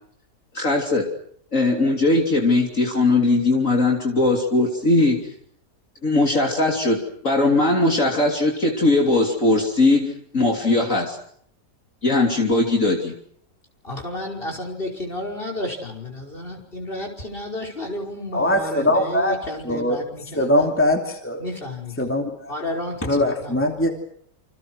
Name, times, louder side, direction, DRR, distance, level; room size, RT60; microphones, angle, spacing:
voice 1, 0.5-1.1 1.5-5.2 6.0-11.2 12.0-13.1, left 2 dB, 50° left, 1 dB, 3.5 m, -19 dB
voice 2, 13.8-20.7 21.4-22.1 22.5-23.6, left 1 dB, 30° left, 1 dB, 5.7 m, -32 dB
voice 3, 18.3-19.4 19.6-20.0 20.3-21.4 22.0-22.5 23.0-23.9, left 1 dB, 5° left, 3 dB, 2.8 m, -21 dB
28.0 x 27.0 x 6.3 m, 0.65 s
omnidirectional pair, 1.8 m